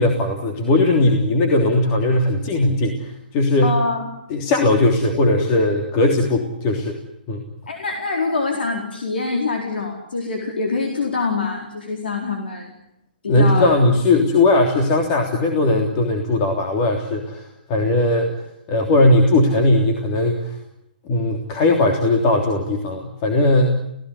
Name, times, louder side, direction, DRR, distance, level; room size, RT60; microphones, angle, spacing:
voice 1, 0.0-3.7 4.3-7.0 7.3-7.4 13.3-18.3 18.7-20.5 21.1-23.7, left 2 dB, 35° left, 3 dB, 3.3 m, -18 dB
voice 2, 3.6-4.1 7.7-12.7 13.2-13.8, left 3 dB, 80° left, 2 dB, 4.4 m, -24 dB
29.0 x 17.5 x 9.6 m, 0.82 s
hypercardioid pair, 140°, 5 cm